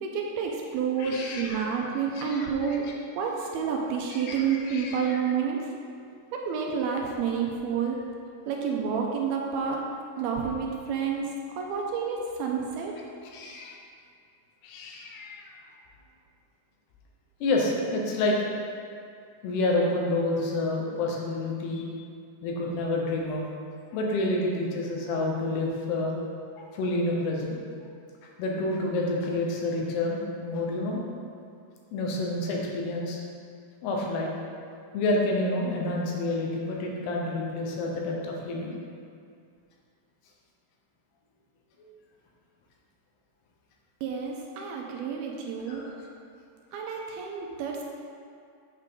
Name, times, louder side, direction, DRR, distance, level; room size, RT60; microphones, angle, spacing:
voice 1, 0.0-2.8 3.2-5.7 6.3-8.0 8.5-9.8 10.2-12.9 44.0-45.9 46.7-47.9, right 6 dB, 80° right, 0 dB, 2.4 m, -29 dB
voice 2, 1.0-1.6 2.1-2.8 4.3-4.4 4.7-5.2 13.3-13.7 14.6-15.5 17.4-18.4 19.4-21.9 22.4-23.4 23.9-26.2 26.6-27.6 28.4-31.0 31.9-33.2 33.8-34.3 34.9-38.7 41.8-41.9 45.6-45.9, left 2 dB, 80° left, -1 dB, 3.1 m, -29 dB
8.2 x 6.7 x 3.7 m, 2.4 s
omnidirectional pair, 4.7 m